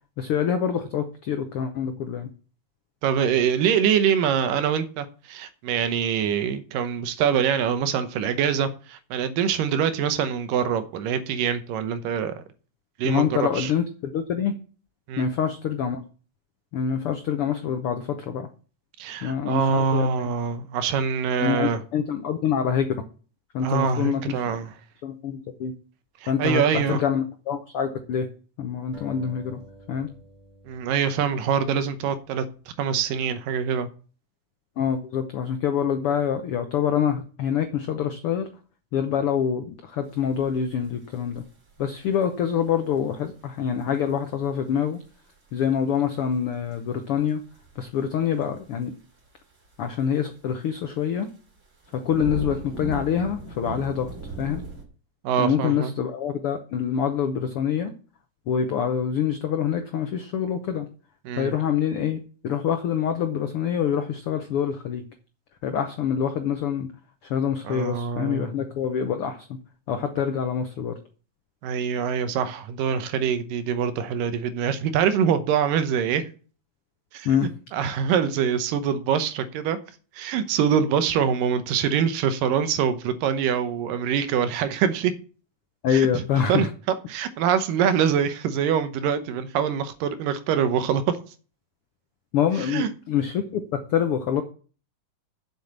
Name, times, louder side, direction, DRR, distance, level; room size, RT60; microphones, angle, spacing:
voice 1, 0.2-2.3 13.0-14.5 15.2-16.0 16.7-18.5 19.2-20.3 21.4-22.9 23.5-24.6 25.0-25.7 26.3-28.3 28.6-29.6 29.9-30.1 34.8-38.5 38.9-41.4 41.8-45.0 45.5-47.4 47.8-49.0 49.8-51.3 51.9-54.6 55.4-57.9 58.5-60.9 61.4-65.0 65.6-66.9 67.2-69.5 69.9-71.0 77.2-77.5 85.8-86.7 92.3-94.4, left 8 dB, 85° left, 7 dB, 1.2 m, -26 dB
voice 2, 3.0-12.4 13.0-13.7 15.1-15.3 19.0-21.8 23.6-24.7 26.2-27.0 30.7-32.5 32.8-33.9 55.2-55.9 61.3-61.5 67.6-68.6 71.6-76.3 77.1-79.8 80.2-85.1 85.9-86.2 86.5-91.2 92.7-92.9, right 7 dB, 85° right, 11 dB, 2.6 m, -24 dB
sound 1, 28.9-32.1, equal, 25° right, 3.7 m, -49 dB
sound 2, 40.3-42.2 42.6-43.3 43.6-43.8 44.5-44.6 44.9-45.3 45.8-45.9 46.7-46.8 47.1-48.8 49.2-49.3 49.6-50.4 51.1-51.3 51.6-54.8, right 2 dB, 40° right, 3.5 m, -37 dB
7.7 x 7.1 x 7.2 m, 0.39 s
omnidirectional pair, 3.8 m